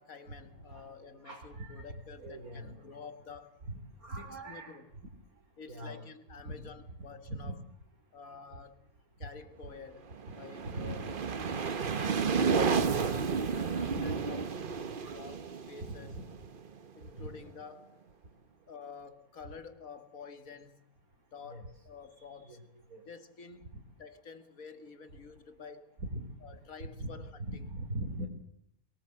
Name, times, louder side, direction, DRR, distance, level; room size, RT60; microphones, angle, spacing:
voice 1, 0.0-3.6 4.2-4.9 5.6-7.6 8.1-8.9 9.2-11.0 11.9-14.6 15.1-16.1 16.9-18.0 18.7-21.0 21.3-26.0 26.4-27.7, left 5 dB, 70° left, 2.1 m, -49 dB
voice 2, 1.2-2.8 3.7-4.8 5.7-6.1 6.5-6.6 7.3-7.5 10.7-10.9 13.9-14.0 15.0-15.2 15.8-16.2 17.2-17.3 21.5-21.6 22.5-22.6 22.9-23.0 26.0-26.3 27.0-28.3, right 1 dB, 80° right, 3.7 m, -41 dB
sound 1, 10.1-16.9, right 5 dB, 40° right, 1.0 m, -32 dB
22.5 x 18.5 x 7.7 m
omnidirectional pair, 1.5 m